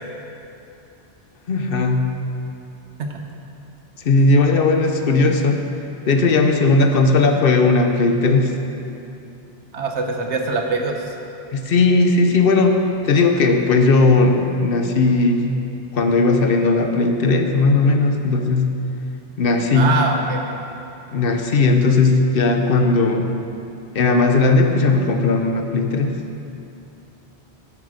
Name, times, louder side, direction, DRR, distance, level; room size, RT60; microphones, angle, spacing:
voice 1, 1.5-2.1 4.0-5.6 6.1-8.5 11.5-15.6 15.9-18.8 19.4-19.9 21.1-23.3 23.9-26.2, left 3 dB, 60° left, 5 dB, 0.9 m, -17 dB
voice 2, 9.7-11.1 19.7-20.4, right 3 dB, 85° right, 2 dB, 1.3 m, -23 dB
11.0 x 7.9 x 5.0 m, 2.8 s
omnidirectional pair, 1.1 m